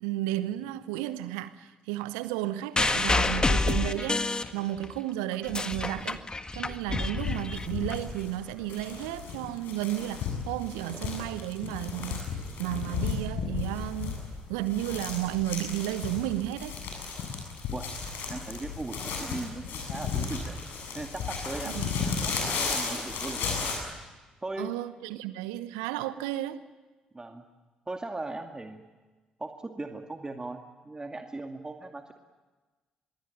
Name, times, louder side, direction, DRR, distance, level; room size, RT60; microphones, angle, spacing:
voice 1, 0.0-6.2 6.5-12.2 12.6-14.2 14.5-16.8 21.6-21.9 24.6-26.6, right 14 dB, 70° right, 0.9 m, -33 dB
sound 1, 2.8-5.0 5.3-7.9 8.8-8.9, left 3 dB, 20° left, 1.7 m, -28 dB
sound 2, 7.1-23.8, left 5 dB, 60° left, 7.9 m, -34 dB
voice 2, 18.3-20.6 21.0-23.5 24.4-24.7 27.1-27.4 27.9-28.8 29.4-32.1, right 2 dB, 20° right, 2.3 m, -38 dB
26.0 x 22.5 x 9.1 m
figure-of-eight pair, 45°, 4 cm